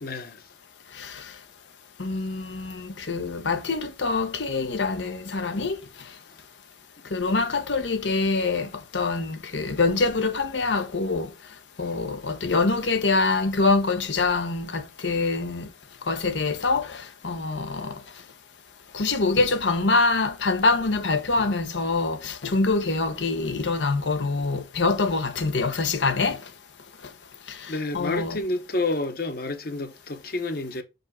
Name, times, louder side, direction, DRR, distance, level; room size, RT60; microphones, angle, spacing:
voice 1, 0.0-0.4 27.7-30.8, left 2 dB, 55° left, 1.0 m, -29 dB
voice 2, 2.0-5.8 7.1-11.3 11.8-15.7 16.1-17.9 18.9-26.4 27.5-28.4, left 3 dB, 90° left, 1.0 m, -25 dB
6.1 x 5.2 x 3.7 m
head